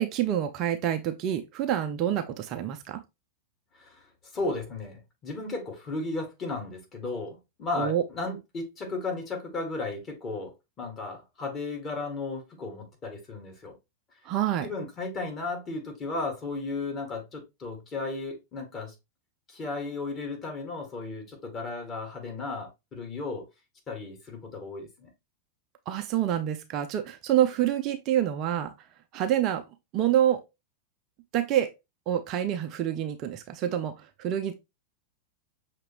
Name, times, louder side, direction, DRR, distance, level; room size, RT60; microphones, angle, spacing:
voice 1, 0.0-3.0 7.8-8.0 14.3-14.7 25.9-28.7 29.1-29.6 29.9-30.4 31.3-31.7 32.1-33.9 34.2-34.5, right 11 dB, 35° right, 0.5 m, -27 dB
voice 2, 4.3-10.5 10.8-13.7 14.6-18.9 19.5-23.5 23.9-25.1, left 3 dB, 30° left, 1.8 m, -35 dB
5.9 x 3.0 x 2.9 m
figure-of-eight pair, 90°, 0 cm